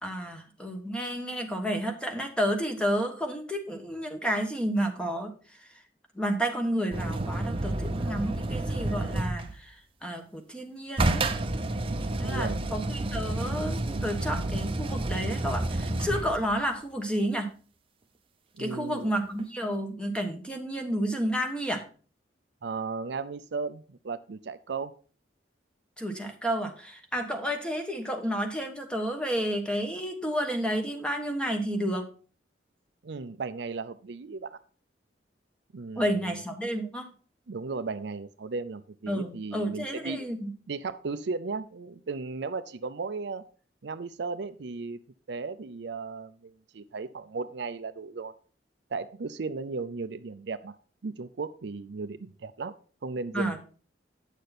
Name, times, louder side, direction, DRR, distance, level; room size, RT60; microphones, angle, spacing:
voice 1, 0.0-5.3 6.1-9.8 10.0-11.2 12.2-17.5 18.6-21.8 26.0-32.1 35.9-37.1 39.1-40.5 53.3-53.6, equal, 5° left, 4 dB, 1.3 m, -31 dB
sound 1, 6.9-9.6 11.0-16.6 19.4-19.5, right 2 dB, 30° right, 0.7 m, -30 dB
voice 2, 11.9-12.6 18.6-19.1 22.6-24.9 33.0-34.6 35.7-36.4 37.5-40.3 40.7-43.4 43.8-45.0 45.3-48.3 48.9-50.7 51.0-52.7 53.0-53.6, right 4 dB, 70° right, 12 dB, 0.5 m, -35 dB
9.1 x 6.7 x 4.1 m, 0.39 s
head